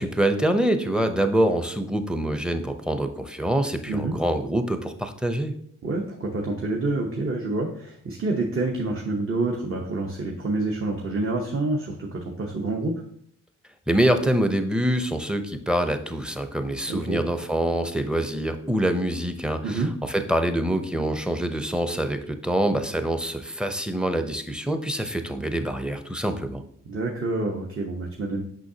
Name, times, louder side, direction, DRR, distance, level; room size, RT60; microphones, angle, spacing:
voice 1, 0.0-5.5 13.9-26.6, right 1 dB, 5° right, 8 dB, 0.7 m, -25 dB
voice 2, 5.8-12.9 16.9-17.2 19.6-19.9 26.9-28.4, right 2 dB, 40° right, 0 dB, 1.0 m, -27 dB
6.2 x 5.5 x 2.8 m, 0.67 s
cardioid pair, 65°, 33 cm